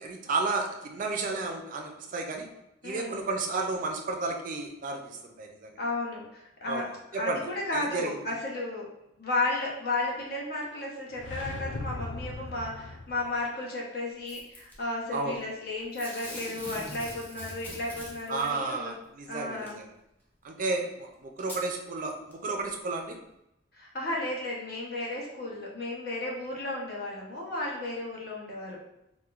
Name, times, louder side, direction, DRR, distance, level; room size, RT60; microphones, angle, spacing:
voice 1, 0.0-2.5 2.8-5.7 6.7-7.4 7.7-8.1 15.1-15.4 18.3-19.9 20.4-23.2, right 3 dB, 45° right, 3 dB, 0.4 m, -32 dB
voice 2, 2.8-3.3 5.8-6.9 7.2-8.9 9.2-18.9 19.3-19.8 23.7-28.8, left 2 dB, 60° left, -3 dB, 0.8 m, -33 dB
sound 1, 11.1-13.4, left 2 dB, 75° left, 0.4 m, -38 dB
Packing tape duct tape / Tearing, 14.3-14.7 15.9-18.5 19.7-19.8 20.7-20.8 21.4-21.6 22.3-22.4, equal, 10° left, 0.7 m, -42 dB
4.1 x 2.1 x 2.4 m, 0.85 s
head